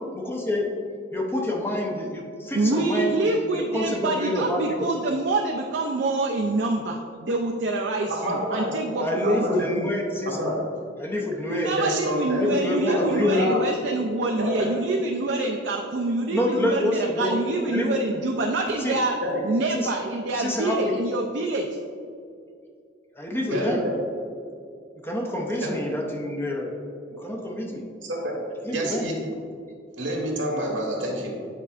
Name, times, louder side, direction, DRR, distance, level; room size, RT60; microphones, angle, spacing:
voice 1, 0.1-0.7 1.1-4.9 9.0-10.6 11.0-11.8 12.3-13.6 16.3-17.4 17.7-18.0 18.8-19.0 19.7-19.9 20.4-21.0 23.1-23.8 25.0-26.8 27.1-27.8 28.6-29.1, left 1 dB, 10° left, 0 dB, 0.6 m, -27 dB
voice 2, 2.5-9.4 11.5-19.2 19.4-21.7, right 2 dB, 65° right, 1 dB, 0.4 m, -26 dB
voice 3, 8.1-8.7 9.2-9.5 10.3-10.6 11.8-12.5 12.8-13.6 14.4-14.7 19.2-19.4 23.5-24.0 25.6-25.8 28.1-28.3 28.7-29.1 30.0-31.3, right 1 dB, 85° right, -1 dB, 1.4 m, -28 dB
8.1 x 5.3 x 2.4 m, 2.3 s
head